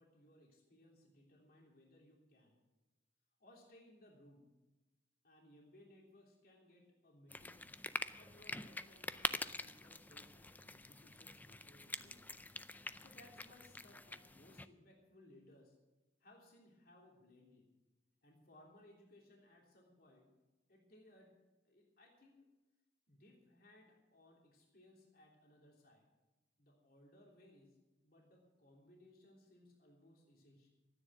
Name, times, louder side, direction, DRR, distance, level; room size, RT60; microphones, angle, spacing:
voice 1, 0.0-2.6 3.4-4.5 5.2-7.7 8.1-12.3 12.7-15.8 16.2-17.6 18.2-20.3 20.7-21.3 21.6-22.4 23.1-26.1 26.6-27.8 28.0-30.7, left 1 dB, 55° left, -1 dB, 3.3 m, -64 dB
sound 1, 7.3-14.7, left 2 dB, 10° left, 0.4 m, -45 dB
13.5 x 9.8 x 7.6 m, 1.1 s
head